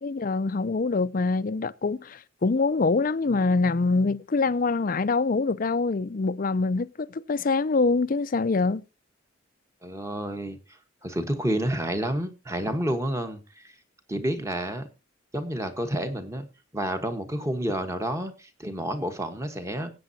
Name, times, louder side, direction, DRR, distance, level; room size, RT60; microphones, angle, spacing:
voice 1, 0.0-8.8, left 3 dB, 45° left, 0.5 m, -25 dB
voice 2, 9.8-10.6 11.0-13.6 14.1-14.9 15.3-16.5 16.7-19.9, right 1 dB, 15° right, 1.3 m, -29 dB
20.0 x 8.5 x 2.8 m
head